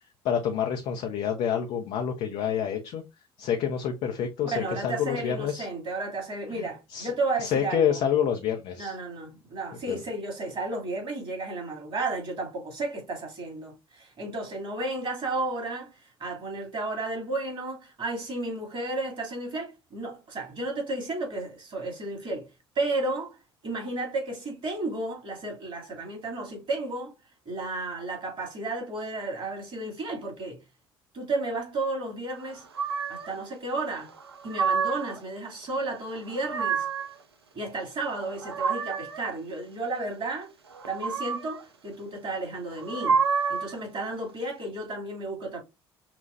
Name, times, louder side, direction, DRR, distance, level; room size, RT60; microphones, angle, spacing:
voice 1, 0.2-3.0 3.4-5.7 6.5-6.6 6.9-7.1 7.4-8.9 9.9-10.0, left 8 dB, 55° left, 0.7 m, -28 dB
voice 2, 4.4-8.0 8.8-23.4 23.6-27.1 27.4-30.6 31.1-32.6 33.1-34.1 34.4-36.9 37.5-40.5 40.9-43.2 43.5-45.6, right 2 dB, 45° right, 2.8 m, -33 dB
sound 1, 32.7-33.3 34.2-35.2 36.1-37.1 38.1-39.2 40.7-41.6 42.7-43.8, right 5 dB, 90° right, 0.4 m, -28 dB
5.8 x 2.4 x 2.6 m
figure-of-eight pair, 55°, 13 cm